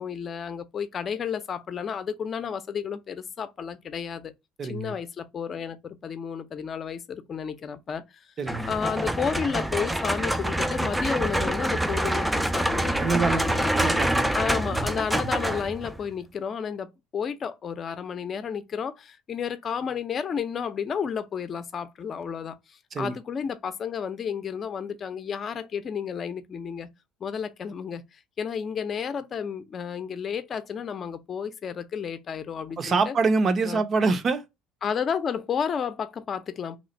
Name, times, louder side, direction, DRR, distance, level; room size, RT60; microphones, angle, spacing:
voice 1, 0.0-4.3 4.6-8.0 8.7-13.9 14.3-26.9 27.2-28.0 28.4-33.2 33.6-33.8 34.8-36.8, left 7 dB, 40° left, 0.6 m, -32 dB
voice 2, 4.6-4.9 8.4-8.7 13.0-13.4 13.7-14.3 14.7-14.9 15.1-15.3 22.9-23.1 32.8-34.4, right 4 dB, 40° right, 0.6 m, -25 dB
sound 1, 8.5-16.1, right 1 dB, 5° right, 0.4 m, -26 dB
3.0 x 2.4 x 4.1 m
supercardioid pair, 100°, 0 cm